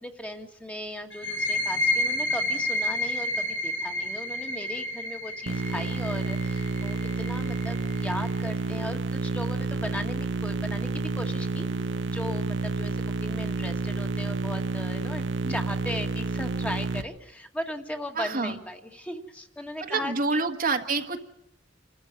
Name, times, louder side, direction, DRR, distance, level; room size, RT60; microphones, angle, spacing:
voice 1, 0.0-11.7 12.1-20.4, left 1 dB, 5° left, 4 dB, 1.9 m, -37 dB
sound 1, 1.1-8.5, left 1 dB, 75° left, 3.3 m, -30 dB
sound 2, 5.5-17.0, right 3 dB, 70° right, 1.2 m, -30 dB
voice 2, 18.1-18.6 19.8-21.2, right 3 dB, 50° right, 5 dB, 1.7 m, -27 dB
27.5 x 14.0 x 9.0 m, 0.90 s
head